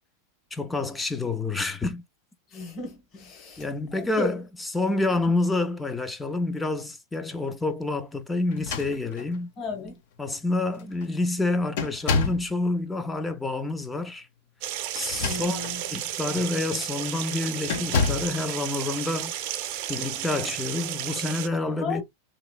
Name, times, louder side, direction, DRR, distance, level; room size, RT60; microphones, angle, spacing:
voice 1, 0.5-2.0 3.6-9.5 10.2-14.3 14.9-15.6 15.9-19.3 19.9-22.0, left 2 dB, 10° left, 0.4 m, -28 dB
voice 2, 2.5-3.6 3.9-4.4 9.6-10.0 15.2-15.8 21.8-22.0, left 3 dB, 30° left, 1.3 m, -34 dB
sound 1, 8.5-9.4 10.3-10.4 10.7-11.1 11.8-12.5 14.9-15.8 16.4-16.6 17.7-18.4, left 4 dB, 65° left, 0.8 m, -28 dB
sound 2, 14.6-21.5, right 12 dB, 55° right, 0.5 m, -33 dB
3.0 x 3.0 x 2.3 m
supercardioid pair, 130°, 0 cm